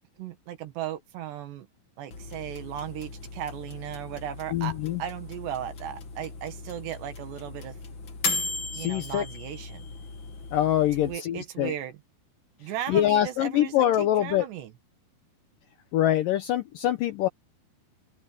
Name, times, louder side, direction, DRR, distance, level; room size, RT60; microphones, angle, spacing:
voice 1, 0.2-1.7 2.0-7.8 8.8-9.9 11.0-11.9 12.6-14.7, right 11 dB, 80° right, 3.9 m, -36 dB
sound 1, 2.1-11.2, left 4 dB, 45° left, 1.7 m, -37 dB
voice 2, 4.5-5.0 8.7-9.3 10.5-11.7 12.9-14.5 15.9-17.3, left 12 dB, 75° left, 2.0 m, -24 dB
open air
omnidirectional pair, 4.9 m